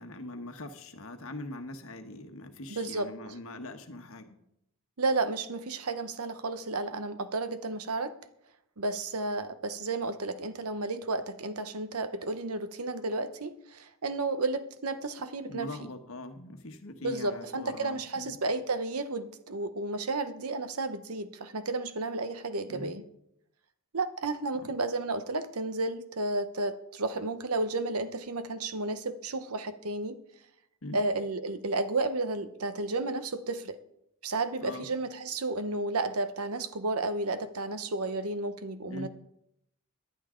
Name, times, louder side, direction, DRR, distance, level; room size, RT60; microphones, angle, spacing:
voice 1, 0.0-4.4 15.5-18.4 22.7-23.0 24.6-24.7 30.8-31.0 34.6-34.9 38.9-39.1, left 1 dB, 65° left, 6 dB, 1.3 m, -42 dB
voice 2, 2.7-3.1 5.0-8.2 8.8-15.7 17.0-23.0 23.9-30.2 30.9-33.8 34.2-39.1, right 2 dB, 90° right, 11 dB, 1.0 m, -32 dB
18.5 x 11.0 x 3.8 m, 0.78 s
head